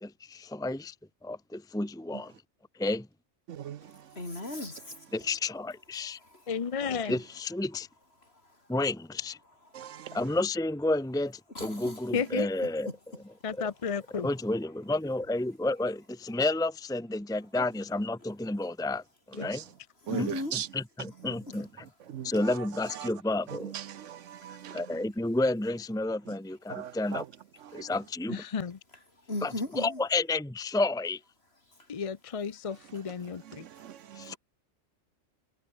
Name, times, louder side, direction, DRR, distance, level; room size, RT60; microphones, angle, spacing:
voice 1, 0.0-0.9 1.2-2.3 2.8-3.1 5.1-6.2 7.1-7.9 8.7-9.4 10.1-12.9 13.6-13.7 14.2-19.0 19.3-19.6 20.1-20.3 20.7-21.7 22.2-23.7 24.7-27.2 27.7-28.4 29.4-31.2 34.2-34.3, left 2 dB, 5° left, 1.0 m, -31 dB
voice 2, 4.1-5.0 6.0-6.5 6.9-7.1 9.7-10.2 11.5-12.1 12.4-13.0 13.7-13.8 14.1-14.3 20.0-20.6 21.2-21.6 22.3-22.4 24.0-24.1 24.7-24.8 28.9-30.0 32.9-33.0 34.3-34.4, left 2 dB, 55° left, 5.5 m, -39 dB
voice 3, 6.5-7.1 12.1-12.5 13.4-14.3 28.3-28.8 31.9-33.4, left 6 dB, 35° left, 0.6 m, -32 dB
voice 4, 9.7-10.2 19.5-19.6 20.1-20.7 22.1-22.3 23.7-24.8 26.7-27.2 27.7-27.8 33.8-34.3, right 10 dB, 80° right, 1.1 m, -38 dB
omnidirectional pair, 1.3 m